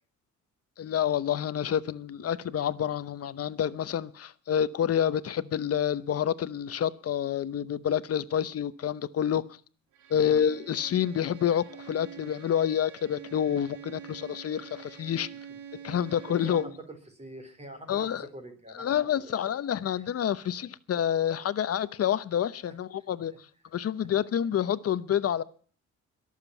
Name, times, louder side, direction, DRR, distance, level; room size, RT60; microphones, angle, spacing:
voice 1, 0.8-9.4 10.1-15.3 15.8-16.6 17.9-18.3 18.7-23.3 23.7-25.4, left 9 dB, 50° left, 0.8 m, -28 dB
Bowed string instrument, 9.9-16.9, right 8 dB, 75° right, 2.0 m, -46 dB
voice 2, 16.3-19.4 19.9-20.1 22.7-22.8, right 1 dB, 20° right, 4.3 m, -46 dB
22.0 x 7.5 x 7.1 m
cardioid pair, 90°, 30 cm